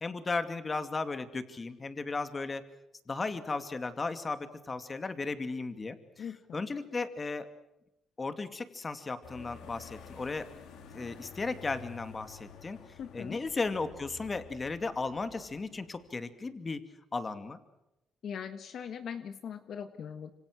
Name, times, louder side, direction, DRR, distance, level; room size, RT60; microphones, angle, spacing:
voice 1, 0.0-2.6 3.1-6.3 6.5-7.5 8.2-10.5 10.9-12.8 13.1-16.8 17.1-17.6, left 3 dB, 30° left, 10 dB, 2.4 m, -35 dB
voice 2, 6.2-6.6 13.0-13.4 18.2-20.3, left 7 dB, 65° left, 9 dB, 1.5 m, -40 dB
sound 1, 9.2-16.2, left 6 dB, 85° left, 3.5 m, -51 dB
26.5 x 25.5 x 6.3 m, 0.89 s
cardioid pair, 90°, 0 cm